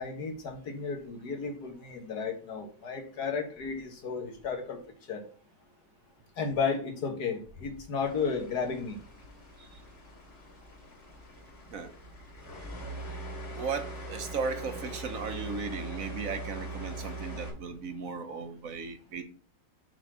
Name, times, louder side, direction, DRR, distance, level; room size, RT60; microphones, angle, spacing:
voice 1, 0.0-4.8 5.1-5.2 6.4-9.0, left 5 dB, 75° left, 5 dB, 2.1 m, -33 dB
sound 1, 8.0-17.5, right 1 dB, 40° left, 3.4 m, -42 dB
voice 2, 13.3-19.2, right 5 dB, 60° right, 8 dB, 1.3 m, -36 dB
7.1 x 4.1 x 6.2 m, 0.41 s
omnidirectional pair, 1.7 m